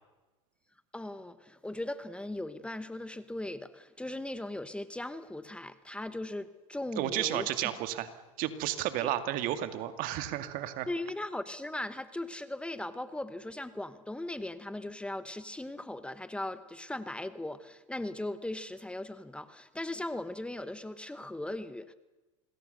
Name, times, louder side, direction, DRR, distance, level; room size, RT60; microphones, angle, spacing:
voice 1, 0.9-7.7 9.0-9.1 10.9-21.9, left 1 dB, 5° left, 13 dB, 1.1 m, -38 dB
voice 2, 7.0-8.1 8.4-10.9, right 12 dB, 55° right, 10 dB, 2.2 m, -32 dB
27.0 x 20.5 x 6.8 m, 1.1 s
hypercardioid pair, 100°, 17 cm